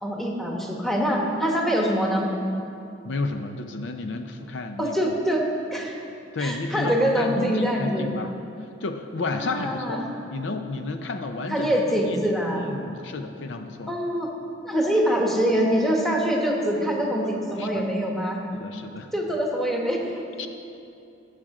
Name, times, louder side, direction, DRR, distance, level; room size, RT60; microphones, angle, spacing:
voice 1, 0.0-2.3 4.8-5.4 5.7-6.0 6.4-8.1 9.3-10.0 11.5-12.7 13.9-14.3 14.6-18.4 19.1-20.2, equal, ahead, -1 dB, 1.2 m, -24 dB
voice 2, 3.0-5.0 6.3-8.4 8.8-10.0 10.3-13.9 17.6-17.8 18.5-19.1 20.4-20.5, left 3 dB, 70° left, 7 dB, 0.6 m, -31 dB
16.5 x 6.2 x 4.9 m, 2.6 s
head